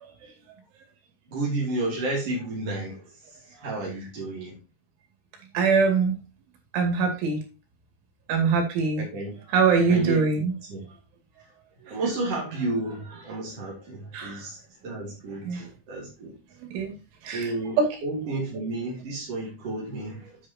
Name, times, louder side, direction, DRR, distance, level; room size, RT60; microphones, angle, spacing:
voice 1, 1.3-4.6 9.0-9.3 9.8-10.3 10.7-10.8 11.8-16.3 17.3-20.4, right 2 dB, 45° right, 2.3 m, -32 dB
voice 2, 5.5-6.1 6.7-7.4 8.3-9.0 9.5-10.5 14.1-14.4 15.5-15.6 16.7-16.9 17.3-17.4 17.8-17.9, right 5 dB, 70° right, 4.7 m, -22 dB
9.4 x 8.3 x 2.8 m
omnidirectional pair, 5.7 m